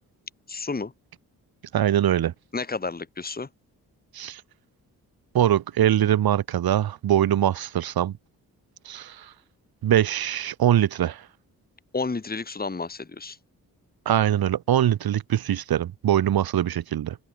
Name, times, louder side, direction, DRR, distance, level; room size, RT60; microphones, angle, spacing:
voice 1, 0.5-0.9 2.5-3.5 11.9-13.4, left 4 dB, 25° left, 2.0 m, -31 dB
voice 2, 1.7-2.3 4.1-4.4 5.3-8.1 8.8-9.3 9.8-11.2 14.0-17.2, right 11 dB, 85° right, 2.8 m, -22 dB
cardioid pair, 60°, 36 cm